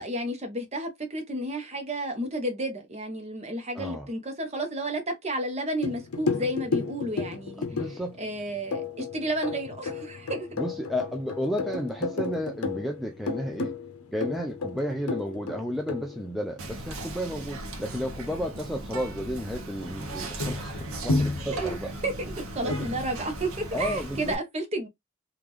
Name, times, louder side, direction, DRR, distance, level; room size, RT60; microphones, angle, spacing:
voice 1, 0.0-7.7 8.2-10.5 21.5-21.7 22.0-24.9, right 1 dB, 30° right, 0.8 m, -32 dB
voice 2, 3.7-4.1 7.7-8.2 10.6-13.8 14.1-21.9 22.6-23.0 23.7-24.4, equal, ahead, 0.3 m, -32 dB
sound 1, 5.8-17.0 19.9-20.0 20.4-22.1 22.7-23.1, left 3 dB, 80° left, 0.6 m, -32 dB
Whispering, 16.6-24.4, right 2 dB, 70° right, 0.8 m, -38 dB
3.6 x 2.4 x 3.0 m
head